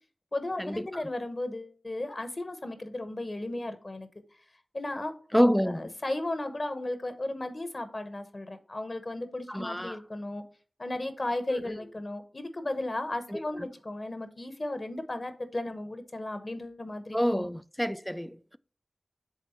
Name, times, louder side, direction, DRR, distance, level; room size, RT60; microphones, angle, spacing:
voice 1, 0.3-4.1 4.7-5.1 5.6-10.4 10.8-17.5, left 2 dB, 45° left, 0.9 m, -35 dB
voice 2, 5.3-5.8 9.5-10.0 11.7-11.8 13.3-13.7 17.1-18.6, equal, 5° left, 0.3 m, -27 dB
7.5 x 3.7 x 4.3 m
wide cardioid pair, 60°, 0 cm